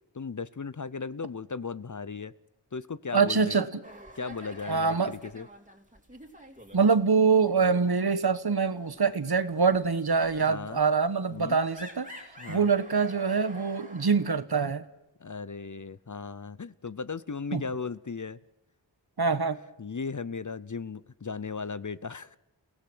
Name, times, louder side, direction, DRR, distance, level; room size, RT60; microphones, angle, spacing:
voice 1, 0.1-2.3 2.7-3.6 4.2-5.5 10.4-10.8 11.3-11.6 12.4-12.7 15.2-18.4 19.8-22.4, left 5 dB, 40° left, 17 dB, 0.7 m, -36 dB
voice 2, 3.1-3.7 4.7-5.1 6.7-12.1 12.5-14.8 17.5-17.6 19.2-19.6, right 5 dB, 55° right, 13 dB, 1.2 m, -24 dB
sound 1, 3.8-7.2 7.4-7.7 8.1-14.3, equal, 15° right, 3.2 m, -49 dB
30.0 x 17.0 x 6.2 m, 0.91 s
wide cardioid pair, 60°, 45 cm